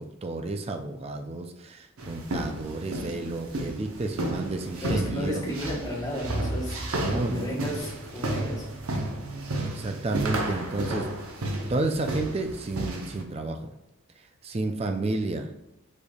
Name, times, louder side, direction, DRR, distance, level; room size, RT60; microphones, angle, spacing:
voice 1, 0.0-5.5 6.9-7.6 9.7-11.1 11.7-13.7 14.4-15.5, right 2 dB, 30° right, 6 dB, 0.4 m, -31 dB
sound 1, 2.0-13.2, right 1 dB, 85° right, 0.9 m, -32 dB
voice 2, 4.8-8.7, equal, 15° left, -4 dB, 1.1 m, -33 dB
5.1 x 4.4 x 2.4 m, 0.93 s
head